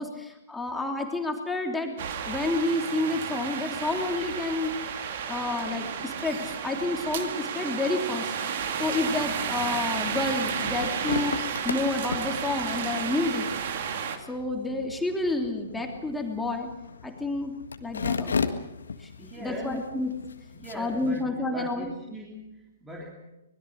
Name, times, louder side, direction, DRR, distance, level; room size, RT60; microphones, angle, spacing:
voice 1, 0.0-2.0 2.2-4.7 5.3-8.3 8.8-11.4 11.6-13.5 14.3-16.7 17.0-17.5 17.8-18.3 19.0-19.1 19.4-20.1 20.7-21.9, left 2 dB, 5° left, 2 dB, 3.1 m, -29 dB
sound 1, 2.0-14.2, right 7 dB, 50° right, 2.5 m, -32 dB
sound 2, 10.1-21.2, left 5 dB, 70° left, 1.7 m, -36 dB
voice 2, 19.2-19.9 20.5-23.1, right 1 dB, 10° right, -2 dB, 3.4 m, -41 dB
25.0 x 20.5 x 6.5 m, 0.97 s
figure-of-eight pair, 115°, 0 cm